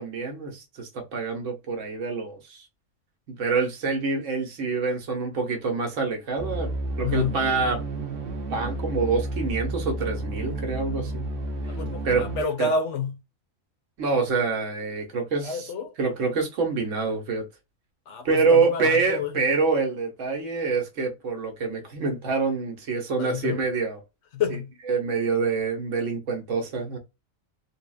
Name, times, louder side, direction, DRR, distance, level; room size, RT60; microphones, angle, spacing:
voice 1, 0.0-2.6 3.3-7.8 8.5-11.3 11.6-11.8 12.0-12.3 12.6-12.7 14.0-15.7 16.0-17.4 18.2-24.0 24.5-24.6 24.9-27.0, right 4 dB, 70° right, 1.2 m, -26 dB
sound 1, 6.4-12.4, right 1 dB, 50° right, 0.8 m, -31 dB
voice 2, 7.0-7.4 11.7-13.2 15.4-15.9 18.1-19.3 23.2-23.6 24.3-24.7, left 4 dB, 70° left, 0.9 m, -29 dB
3.8 x 2.0 x 2.3 m
omnidirectional pair, 1.4 m